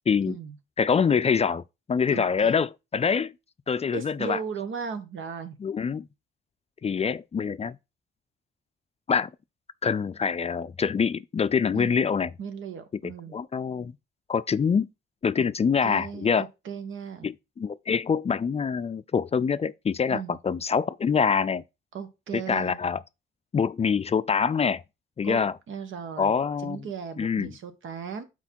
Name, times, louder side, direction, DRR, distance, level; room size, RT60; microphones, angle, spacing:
voice 1, 0.1-0.4 0.8-1.6 1.9-3.3 3.7-4.4 5.6-6.1 6.8-7.8 9.1-9.3 9.8-12.3 13.0-13.9 14.3-14.9 15.2-16.5 17.2-21.6 22.3-23.0 23.5-24.8 25.2-25.5 26.2-26.8 27.2-27.5, left 6 dB, 30° left, 0.4 m, -25 dB
voice 2, 2.1-2.5 3.9-5.6 11.7-12.0 12.4-13.3 15.4-15.5 15.8-17.3 20.1-20.4 21.9-22.8 25.2-25.4 25.7-26.3 26.6-28.2, right 6 dB, 80° right, 1.2 m, -36 dB
6.0 x 4.5 x 4.4 m
cardioid pair, 85°, 20 cm